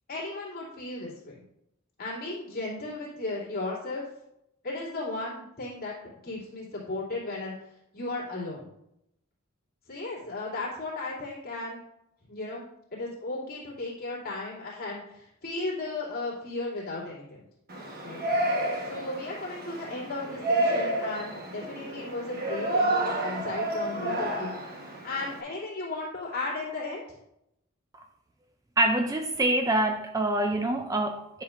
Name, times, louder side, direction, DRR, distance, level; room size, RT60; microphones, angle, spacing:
voice 1, 0.1-1.4 2.0-4.0 4.6-6.0 6.2-7.5 7.9-8.7 9.9-11.8 12.3-17.4 18.0-18.2 18.9-24.5 25.0-27.0, left 2 dB, 45° left, -7 dB, 2.8 m, -35 dB
Yell, 17.7-25.4, right 1 dB, 45° right, 1.2 m, -30 dB
voice 2, 28.8-31.4, right 1 dB, 15° right, 5 dB, 0.3 m, -26 dB
10.0 x 5.8 x 2.5 m, 0.81 s
head